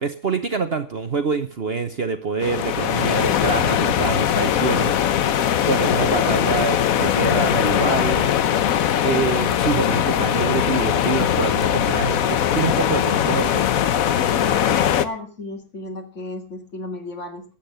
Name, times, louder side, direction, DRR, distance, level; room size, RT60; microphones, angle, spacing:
voice 1, 0.0-5.3 5.6-8.3 9.0-13.7, right 5 dB, 45° right, 8 dB, 1.0 m, -26 dB
sound 1, 2.4-15.0, left 10 dB, 65° left, 1.2 m, -20 dB
voice 2, 14.0-17.4, left 2 dB, 50° left, 4 dB, 2.7 m, -34 dB
13.5 x 9.0 x 6.8 m, 0.39 s
omnidirectional pair, 1.6 m